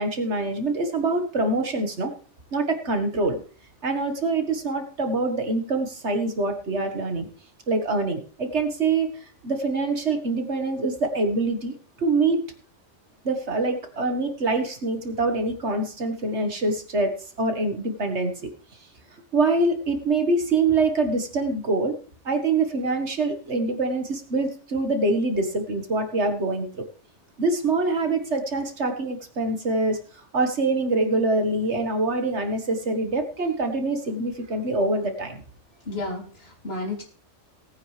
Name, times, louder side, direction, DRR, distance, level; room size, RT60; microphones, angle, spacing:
voice 1, 0.0-2.1 2.5-3.4 3.8-7.3 7.7-9.1 9.4-12.4 13.2-18.5 19.3-21.9 22.3-26.9 27.4-35.4, right 3 dB, 65° right, 5 dB, 2.0 m, -25 dB
voice 2, 35.8-37.0, left 2 dB, 55° left, 0 dB, 3.4 m, -32 dB
18.5 x 8.9 x 3.3 m, 0.39 s
omnidirectional pair, 1.3 m